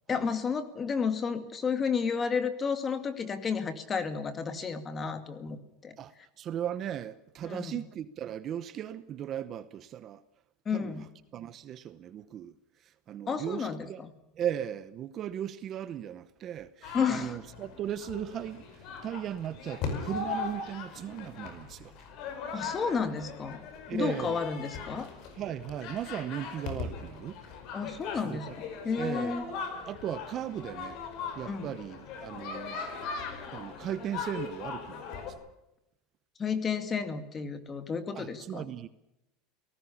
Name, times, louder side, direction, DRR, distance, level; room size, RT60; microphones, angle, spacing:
voice 1, 0.1-6.0 7.4-7.8 10.7-11.0 13.3-14.1 16.9-17.4 22.5-23.6 23.9-25.1 27.7-29.4 31.5-31.7 32.3-32.4 36.4-38.6, left 6 dB, 20° left, 2.1 m, -32 dB
voice 2, 6.0-10.2 10.7-14.0 14.3-21.9 23.9-24.5 25.3-27.4 28.1-28.6 29.0-29.6 29.8-31.0 31.3-32.8 33.5-35.4 38.1-38.9, right 10 dB, 30° right, 0.8 m, -37 dB
sound 1, 16.8-35.3, left 5 dB, 45° left, 5.2 m, -39 dB
29.5 x 18.5 x 7.1 m
supercardioid pair, 165°, 0 cm